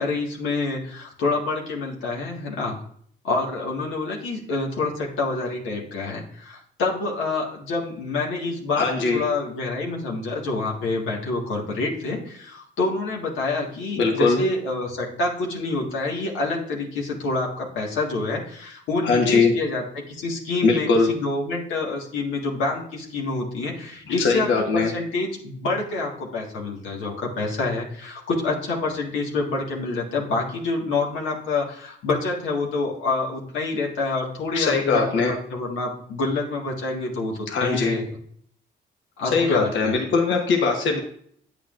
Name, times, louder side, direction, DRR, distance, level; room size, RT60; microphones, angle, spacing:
voice 1, 0.0-2.8 3.2-38.1 39.2-40.0, left 3 dB, 90° left, -2 dB, 1.7 m, -27 dB
voice 2, 8.7-9.2 14.0-14.4 19.0-19.5 20.6-21.1 24.2-24.9 34.5-35.3 37.5-38.0 39.3-41.0, left 4 dB, 70° left, 1 dB, 1.3 m, -21 dB
8.9 x 8.4 x 2.5 m, 0.62 s
cardioid pair, 90°, 20 cm